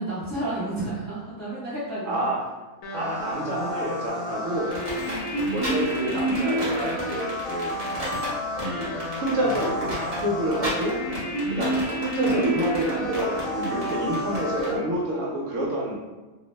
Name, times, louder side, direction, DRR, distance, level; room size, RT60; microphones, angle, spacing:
voice 1, 0.0-2.2, right 1 dB, 15° left, -10 dB, 0.5 m, -31 dB
voice 2, 2.0-2.4 2.9-4.8 5.5-7.7 8.6-11.0 11.5-16.0, right 1 dB, 65° right, -3 dB, 0.9 m, -28 dB
sound 1, 2.8-14.7, equal, 90° left, 1.1 m, -30 dB
sound 2, 4.7-14.7, right 1 dB, 30° right, 0.9 m, -34 dB
2.7 x 2.0 x 3.1 m, 1.2 s
omnidirectional pair, 1.5 m